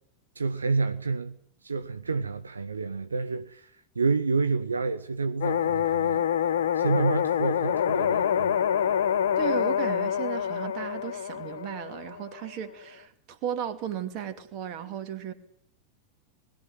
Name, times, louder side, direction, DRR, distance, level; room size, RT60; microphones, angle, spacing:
voice 1, 0.3-8.9, right 4 dB, 75° right, 0.8 m, -29 dB
sound 1, 5.4-12.4, left 9 dB, 60° left, 0.8 m, -26 dB
voice 2, 9.4-15.3, right 9 dB, 40° right, 2.5 m, -35 dB
21.0 x 15.0 x 9.2 m
figure-of-eight pair, 90°, 0 cm